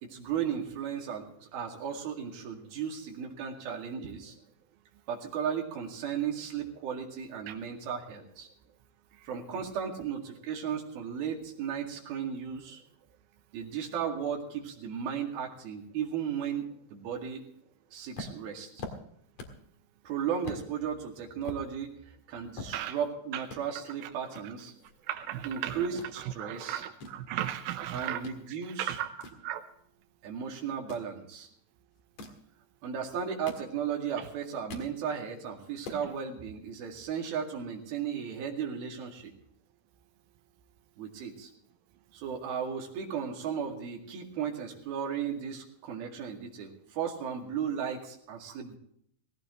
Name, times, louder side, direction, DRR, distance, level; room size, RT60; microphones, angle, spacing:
voice 1, 0.0-4.4 5.1-8.5 9.3-12.8 13.5-17.4 17.9-18.7 20.0-21.9 22.3-24.7 25.4-26.8 27.9-29.0 30.2-31.5 32.8-39.3 41.0-41.5 42.1-48.8, right 7 dB, 60° right, 1 dB, 3.7 m, -35 dB
sound 1, 18.2-19.7 20.0-20.1 20.4-20.6 21.1-23.1 23.4-23.6 24.3-25.5 25.8-26.1 26.7-28.4 28.8-30.1 30.7-31.1 32.0-32.5 33.1-34.1 34.4-34.9 35.3-35.4 35.7-36.1, left 3 dB, 50° left, 2.0 m, -44 dB
voice 2, 25.1-25.9 26.2-28.2 28.8-29.6 34.2-34.3, right 12 dB, 80° right, 7 dB, 2.2 m, -35 dB
18.0 x 17.0 x 3.1 m, 0.69 s
omnidirectional pair, 5.3 m